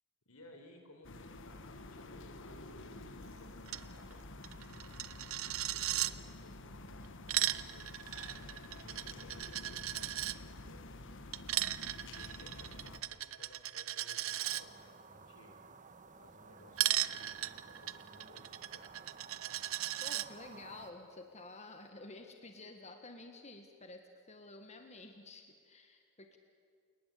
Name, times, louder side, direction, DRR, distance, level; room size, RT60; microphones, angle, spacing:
voice 1, 0.3-4.9 5.6-11.0 11.7-15.6 16.2-19.1, left 1 dB, 85° left, 5 dB, 4.3 m, -60 dB
sound 1, 1.0-13.0, left 2 dB, 60° left, 1.5 m, -49 dB
Coin (dropping), 3.7-3.8 4.1-4.2 4.4-6.1 7.0-10.4 11.3-14.6 16.8-20.3, right 14 dB, 65° right, 0.7 m, -37 dB
sound 2, 14.4-20.9, right 4 dB, 35° right, 1.3 m, -55 dB
voice 2, 20.0-26.4, left 2 dB, 30° left, 5 dB, 1.6 m, -51 dB
28.5 x 19.0 x 8.5 m, 2.1 s
head